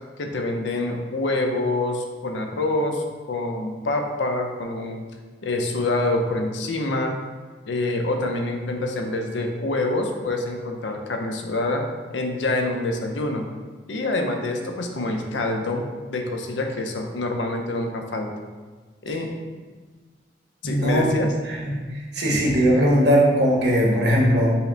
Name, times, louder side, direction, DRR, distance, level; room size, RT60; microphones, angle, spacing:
voice 1, 0.2-5.1 5.4-7.2 7.7-11.9 12.1-13.5 13.9-18.3 19.0-19.3 20.6-21.3 22.3-22.4, left 2 dB, 90° left, 3 dB, 0.6 m, -26 dB
voice 2, 20.6-21.2 21.5-21.7 22.1-24.6, equal, 70° right, -3 dB, 0.9 m, -19 dB
5.6 x 2.1 x 3.8 m, 1.4 s
head